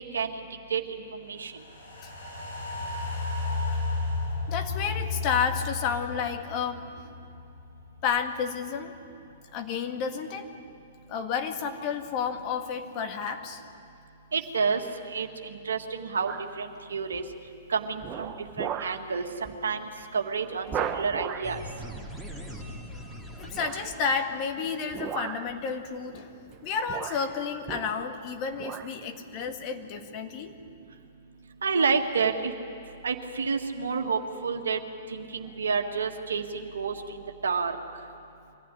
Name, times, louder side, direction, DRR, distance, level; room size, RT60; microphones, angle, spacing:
sound 1, 1.5-7.9 8.3-8.4, left 3 dB, 85° left, 7.5 m, -33 dB
voice 1, 4.5-6.8 8.0-9.0 9.5-10.5 11.1-13.6 23.4-26.4 26.6-30.6, left 6 dB, 40° left, 5 dB, 1.9 m, -31 dB
voice 2, 14.3-17.2 17.7-21.6 31.6-32.5 33.0-34.8 35.1-37.8, right 5 dB, 75° right, 5 dB, 1.7 m, -29 dB
sound 2, 16.3-16.6 17.1-17.5 18.0-19.1 19.4-19.6 20.0-20.1 20.7-21.6 23.5-24.0 24.9-25.6 26.5-26.6 26.9-28.2 28.5-28.9 29.5-29.6, right 8 dB, 30° right, 1.3 m, -36 dB
sound 3, 21.4-24.7, equal, 5° left, 2.6 m, -41 dB
23.5 x 15.0 x 10.0 m, 2.6 s
figure-of-eight pair, 110°, 0 cm